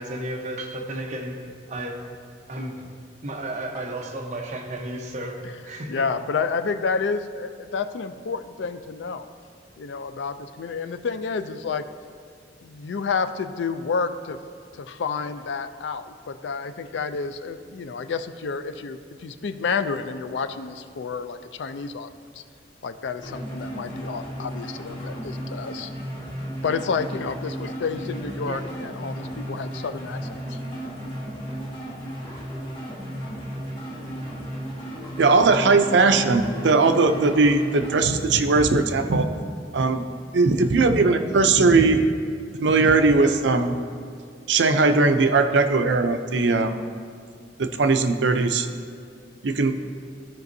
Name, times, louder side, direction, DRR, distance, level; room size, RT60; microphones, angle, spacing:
voice 1, 0.0-1.4 1.7-2.1 2.5-2.9 3.2-6.1 28.5-28.7, right 1 dB, 45° right, 1 dB, 0.9 m, -33 dB
voice 2, 5.9-9.3 9.8-11.8 12.6-14.4 14.7-22.1 22.4-22.5 22.8-25.9 26.6-30.6, left 5 dB, 85° left, 10 dB, 0.4 m, -30 dB
sound 1, 23.2-38.1, equal, 25° left, 1.5 m, -34 dB
voice 3, 35.2-39.3 39.7-40.1 40.3-42.0 42.6-43.7 44.5-46.7 47.6-48.7 49.4-49.7, right 3 dB, 85° right, 8 dB, 0.5 m, -19 dB
14.5 x 5.2 x 2.7 m, 2.2 s
head